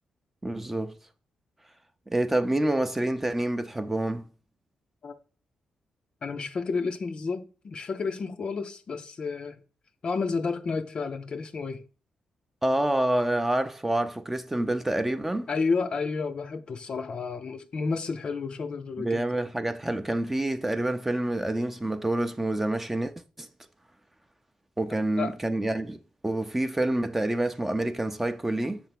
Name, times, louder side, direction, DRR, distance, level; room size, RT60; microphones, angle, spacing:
voice 1, 0.4-0.9 2.1-4.2 12.6-15.5 19.0-23.5 24.8-28.8, right 1 dB, 10° right, 0.6 m, -27 dB
voice 2, 6.2-9.6 10.0-11.8 15.5-19.2 25.2-25.4, left 4 dB, 45° left, 0.6 m, -31 dB
7.3 x 3.4 x 5.9 m
cardioid pair, 115°, 2 cm